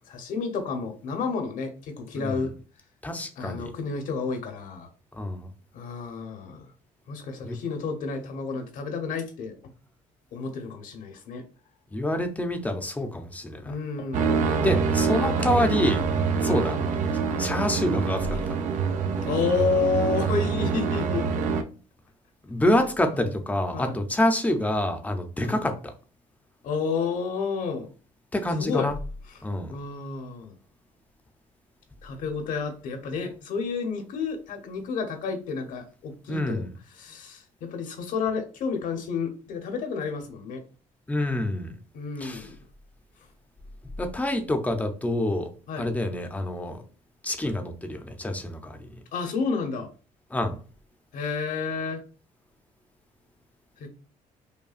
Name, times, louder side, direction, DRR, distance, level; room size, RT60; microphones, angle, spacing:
voice 1, 0.1-2.5 3.4-4.9 5.7-6.7 7.1-9.5 10.3-11.4 13.7-14.4 16.5-16.9 19.2-21.2 23.1-23.3 23.7-23.9 25.4-25.6 26.6-27.9 28.6-28.9 29.7-30.5 32.0-36.6 37.0-40.6 41.9-42.5 45.7-45.9 49.1-49.9 51.1-52.0 53.8-53.9, left 5 dB, 70° left, 5 dB, 0.9 m, -30 dB
voice 2, 2.1-2.5 3.0-3.7 5.1-5.5 7.4-7.6 11.9-13.7 14.6-16.1 16.4-16.8 17.4-18.6 22.5-25.9 28.3-28.9 29.4-29.7 36.3-36.7 41.1-41.8 42.2-42.5 44.0-46.8 47.2-49.0 50.3-50.6, left 1 dB, 10° left, 6 dB, 0.6 m, -27 dB
sound 1, 14.1-21.6, right 5 dB, 60° right, 0.5 m, -25 dB
5.3 x 2.3 x 2.4 m, 0.37 s
cardioid pair, 115°, 14 cm